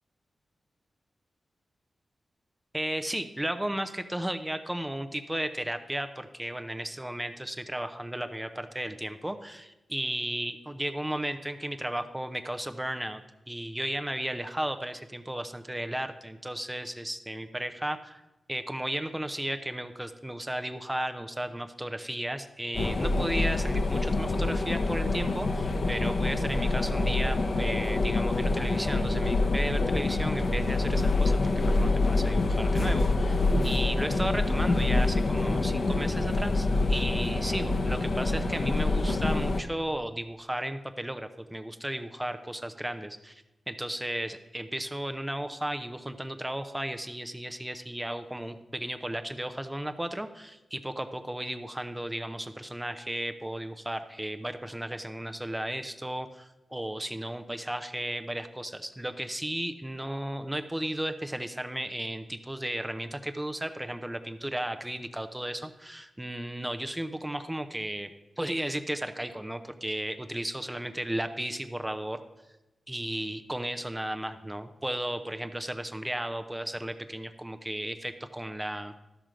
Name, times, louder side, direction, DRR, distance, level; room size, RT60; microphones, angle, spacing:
voice 1, 2.7-13.2 13.5-18.2 18.5-68.1 68.4-72.2 72.9-79.0, right 1 dB, 10° right, 9 dB, 0.6 m, -34 dB
sound 1, 22.7-39.6, left 2 dB, 55° left, 0.8 m, -26 dB
12.5 x 6.1 x 5.1 m, 1.0 s
wide cardioid pair, 110°, 0 cm